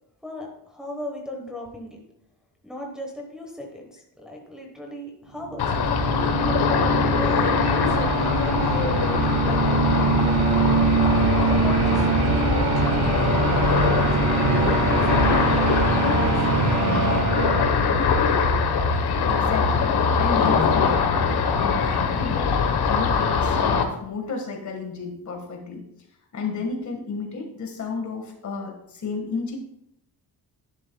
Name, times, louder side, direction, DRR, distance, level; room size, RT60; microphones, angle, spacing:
voice 1, 0.2-2.0 2.6-5.7 6.4-10.9 11.5-14.0 14.6-16.4, left 1 dB, ahead, -1 dB, 1.1 m, -37 dB
sound 1, 5.4-18.4, right 3 dB, 45° right, 1.5 m, -23 dB
Ocean, 5.6-23.8, left 5 dB, 80° left, 1.2 m, -23 dB
voice 2, 19.3-19.9 20.2-25.8 26.3-29.6, left 4 dB, 50° left, 2 dB, 1.6 m, -32 dB
11.0 x 10.0 x 2.3 m, 0.78 s
wide cardioid pair, 180°, 39 cm